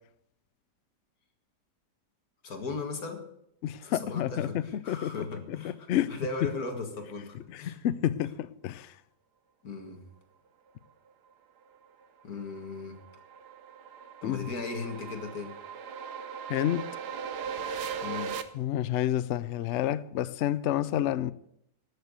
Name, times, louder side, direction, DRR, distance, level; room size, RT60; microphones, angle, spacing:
voice 1, 2.4-3.2 3.8-7.8 9.6-10.1 12.2-13.0 14.2-15.6 18.0-18.4, left 4 dB, 60° left, 2.2 m, -37 dB
voice 2, 3.6-5.1 5.5-6.1 7.5-8.9 14.2-14.5 16.5-16.9 17.7-17.9 18.5-21.3, left 12 dB, 85° left, 0.6 m, -30 dB
sound 1, 11.8-18.4, right 7 dB, 70° right, 1.4 m, -39 dB
13.0 x 6.7 x 8.1 m
omnidirectional pair, 1.8 m